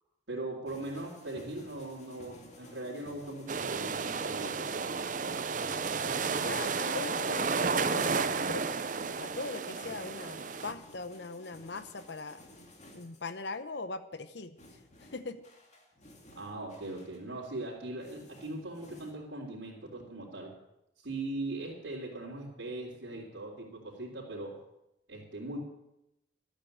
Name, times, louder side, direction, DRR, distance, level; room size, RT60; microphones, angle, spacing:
voice 1, 0.3-4.6 16.3-20.5 21.0-24.5 25.1-25.6, right 2 dB, 70° right, -5 dB, 3.7 m, -40 dB
sound 1, 0.7-13.3 14.6-19.1, left 1 dB, 35° left, 2.3 m, -54 dB
sound 2, 3.5-10.7, right 5 dB, 45° right, 0.6 m, -32 dB
voice 2, 6.3-8.8 9.2-12.4 12.9-14.6 15.0-15.4, left 3 dB, 60° left, 12 dB, 0.8 m, -40 dB
13.5 x 9.0 x 8.8 m, 0.87 s
head